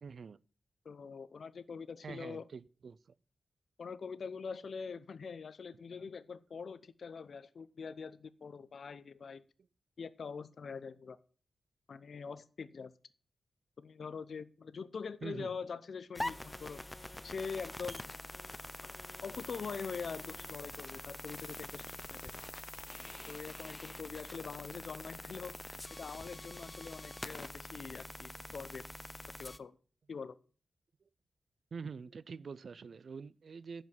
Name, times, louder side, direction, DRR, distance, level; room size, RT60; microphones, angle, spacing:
voice 1, 0.0-0.4 2.0-3.0 15.2-15.5 31.7-33.8, right 5 dB, 65° right, 0.4 m, -45 dB
voice 2, 0.8-2.4 3.8-9.4 10.0-11.2 11.9-12.9 13.8-16.8 17.2-18.1 18.8-19.0 19.2-22.3 23.3-28.9 29.4-29.8 30.1-30.4, left 5 dB, 70° left, 0.6 m, -44 dB
sound 1, 16.1-29.6, left 1 dB, 20° left, 0.6 m, -45 dB
11.0 x 4.9 x 7.6 m
cardioid pair, 75°, 0 cm